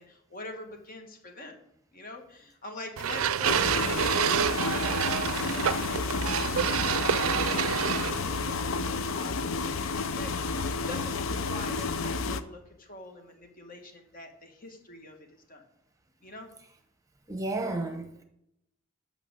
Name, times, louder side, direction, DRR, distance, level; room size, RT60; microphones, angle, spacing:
voice 1, 0.0-1.6 1.9-15.6 16.2-16.5, left 2 dB, 45° left, 1.8 m, -45 dB
sound 1, 3.0-8.5, right 8 dB, 85° right, 0.4 m, -28 dB
sound 2, 3.4-12.4, left 4 dB, 75° left, 0.6 m, -31 dB
voice 2, 17.3-18.2, right 2 dB, 15° right, 1.0 m, -32 dB
9.0 x 6.8 x 6.4 m
head